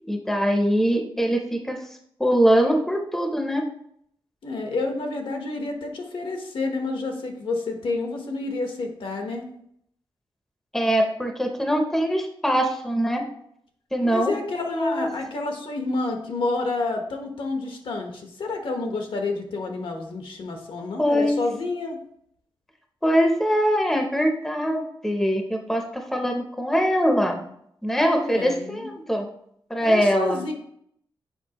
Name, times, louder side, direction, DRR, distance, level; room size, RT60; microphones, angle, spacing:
voice 1, 0.1-1.8 2.2-3.7 10.7-13.2 13.9-14.3 14.7-15.1 21.0-21.4 23.0-27.4 27.8-29.3 29.7-30.4, equal, 5° left, 3 dB, 0.6 m, -22 dB
voice 2, 4.4-9.5 14.0-22.0 28.3-28.9 29.8-30.5, left 3 dB, 70° left, 4 dB, 1.0 m, -29 dB
7.1 x 5.0 x 2.9 m, 0.71 s
wide cardioid pair, 175°, 9 cm